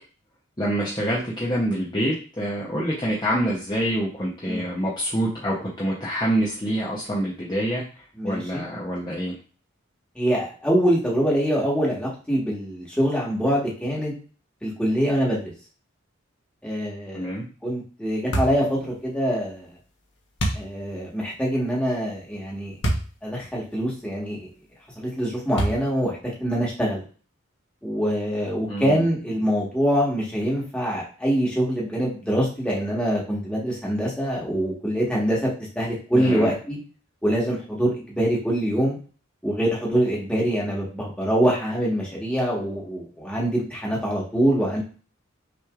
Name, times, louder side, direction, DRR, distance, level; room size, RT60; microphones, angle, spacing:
voice 1, 0.6-7.8 8.2-9.3 17.1-17.4 28.7-29.0 36.1-36.5, equal, 20° left, -5 dB, 0.8 m, -26 dB
voice 2, 8.1-8.6 10.1-14.1 14.6-15.5 16.6-17.3 17.6-19.7 20.5-22.8 23.2-24.5 24.9-27.0 27.8-35.5 35.7-36.8 37.2-39.0 39.4-44.8, equal, 5° left, -5 dB, 1.4 m, -24 dB
sound 1, 18.3-18.7 20.4-20.7 22.8-23.1 23.7-23.8 25.6-26.0, right 1 dB, 60° left, 1.1 m, -24 dB
6.0 x 3.2 x 2.4 m, 0.38 s
head